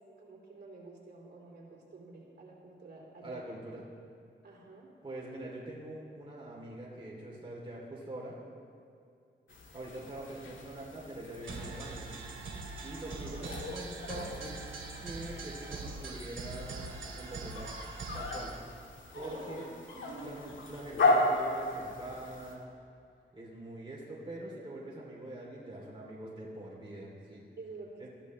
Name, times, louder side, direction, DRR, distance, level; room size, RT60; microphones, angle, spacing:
voice 1, 0.2-3.4 4.4-4.9 13.4-13.6 19.1-20.4 27.6-28.1, right 3 dB, 55° right, -3 dB, 3.4 m, -49 dB
voice 2, 3.2-3.8 5.0-8.4 9.7-12.1 12.8-14.7 14.9-17.7 18.1-18.5 19.1-19.7 20.0-22.7 23.3-27.4 28.0-28.1, right 1 dB, 25° right, -4 dB, 2.8 m, -44 dB
sound 1, 9.5-22.6, left 2 dB, 80° left, 1.9 m, -36 dB
sound 2, 11.4-18.6, right 3 dB, 80° right, 2.1 m, -42 dB
21.0 x 14.0 x 3.1 m, 2.5 s
cardioid pair, 80°, 20 cm